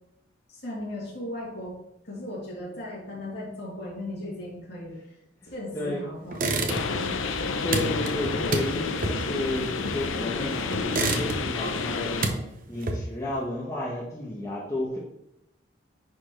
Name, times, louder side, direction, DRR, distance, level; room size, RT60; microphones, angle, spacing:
voice 1, 0.5-1.8 2.0-4.9 5.4-7.1, left 1 dB, 55° left, -5 dB, 3.0 m, -37 dB
voice 2, 5.7-6.0 7.6-12.4 12.7-15.0, left 1 dB, 15° left, -5 dB, 1.1 m, -32 dB
sound 1, 6.3-7.1 7.4-10.3 10.7-11.7 12.0-13.3, right 2 dB, 45° right, 0.8 m, -29 dB
sound 2, 6.7-12.3, left 4 dB, 85° left, 0.6 m, -30 dB
10.0 x 4.5 x 3.2 m, 0.82 s
head